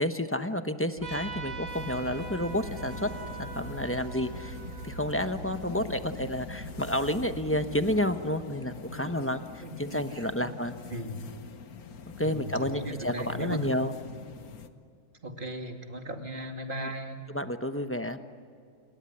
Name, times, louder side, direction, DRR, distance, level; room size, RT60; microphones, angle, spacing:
voice 1, 0.0-3.1 3.4-4.6 4.8-10.7 12.2-13.9 17.3-18.2, left 1 dB, 10° left, 8 dB, 0.8 m, -30 dB
Trumpet, 1.0-6.1, right 4 dB, 55° right, 4.7 m, -44 dB
sound 1, 1.0-8.0, right 4 dB, 85° right, 2.2 m, -44 dB
sound 2, 1.7-14.7, left 6 dB, 70° left, 1.6 m, -44 dB
voice 2, 9.6-10.5 10.9-11.2 12.2-13.7 15.2-17.2, equal, 35° right, 4 dB, 2.6 m, -37 dB
29.0 x 20.5 x 9.9 m, 2.3 s
omnidirectional pair, 1.6 m